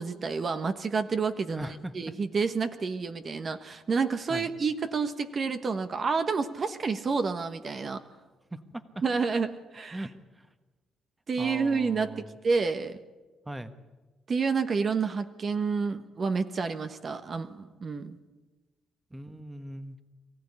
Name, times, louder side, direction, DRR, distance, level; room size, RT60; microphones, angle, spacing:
voice 1, 0.0-1.7 1.9-8.0 9.0-9.5 9.7-10.0 11.3-13.0 14.3-18.2, right 5 dB, 45° right, 9 dB, 1.2 m, -29 dB
voice 2, 1.5-1.9 4.3-4.5 8.5-9.0 9.9-10.5 11.4-12.3 13.4-13.7 19.1-20.0, right 1 dB, 10° right, 9 dB, 1.4 m, -39 dB
23.5 x 15.0 x 9.9 m, 1.2 s
cardioid pair, 90°, 0 cm